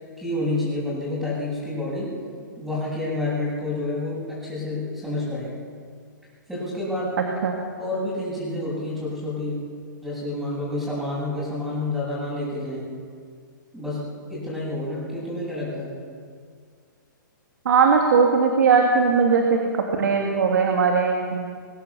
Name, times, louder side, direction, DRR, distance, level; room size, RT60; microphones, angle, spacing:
voice 1, 0.2-2.1 2.6-5.5 6.5-7.2 7.8-9.6 10.0-12.9 13.7-14.0 14.3-15.9, left 2 dB, 5° right, -11 dB, 7.8 m, -29 dB
voice 2, 17.6-21.4, right 5 dB, 70° right, 1 dB, 2.8 m, -19 dB
22.0 x 17.5 x 7.2 m, 2.1 s
hypercardioid pair, 145°, 11 cm